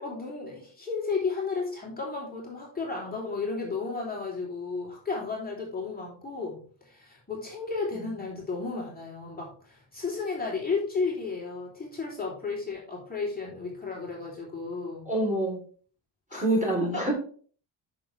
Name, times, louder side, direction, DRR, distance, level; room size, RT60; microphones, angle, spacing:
voice 1, 0.0-15.1 16.3-16.9, left 4 dB, 20° left, -3 dB, 3.3 m, -33 dB
voice 2, 15.1-15.6 16.3-17.1, right 1 dB, 15° right, 0 dB, 3.6 m, -26 dB
8.3 x 6.8 x 3.4 m, 0.43 s
cardioid pair, 105°, 49 cm